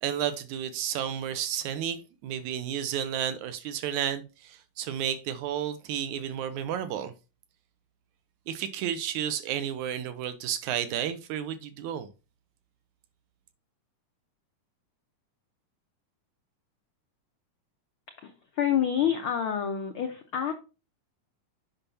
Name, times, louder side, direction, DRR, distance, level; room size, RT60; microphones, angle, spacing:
voice 1, 0.0-7.1 8.5-12.1, right 9 dB, 80° right, 2.0 m, -32 dB
voice 2, 18.2-20.5, left 9 dB, 80° left, 1.1 m, -28 dB
8.9 x 5.7 x 2.7 m
omnidirectional pair, 3.6 m